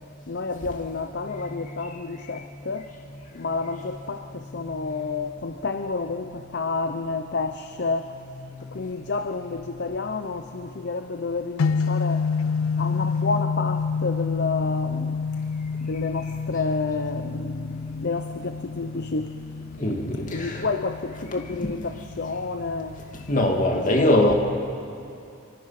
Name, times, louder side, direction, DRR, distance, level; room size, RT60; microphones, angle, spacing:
voice 1, 0.3-2.9 3.3-8.1 8.7-12.2 12.8-15.2 15.8-19.4 20.3-23.0 23.7-24.3, left 4 dB, 55° left, 8 dB, 0.7 m, -30 dB
voice 2, 4.5-4.9 6.6-7.4 8.4-9.1 9.6-9.9 12.6-13.1 16.2-16.3 19.8-20.7 21.6-21.7 23.3-24.3, left 1 dB, 40° left, 1 dB, 2.5 m, -25 dB
sound 1, 11.6-23.7, left 5 dB, 85° left, 0.4 m, -29 dB
25.0 x 24.5 x 6.0 m, 2.6 s
head